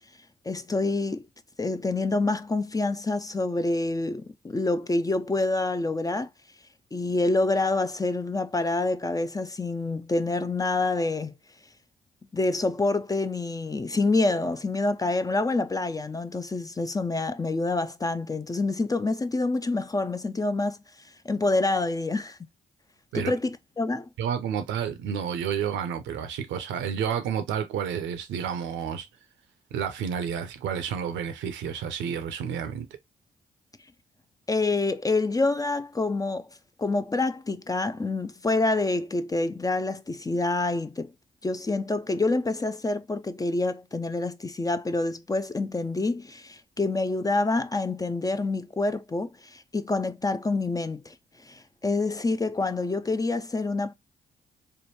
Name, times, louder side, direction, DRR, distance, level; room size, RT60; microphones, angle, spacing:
voice 1, 0.5-1.2 1.6-6.3 6.9-11.3 12.3-20.8 21.2-22.4 23.1-24.1 34.5-36.5 36.8-41.1 41.4-51.1 51.4-53.9, left 2 dB, 20° left, 0.4 m, -27 dB
voice 2, 24.2-29.1 29.7-32.9, right 8 dB, 70° right, 0.6 m, -30 dB
3.4 x 2.2 x 2.9 m
hypercardioid pair, 40°, 20 cm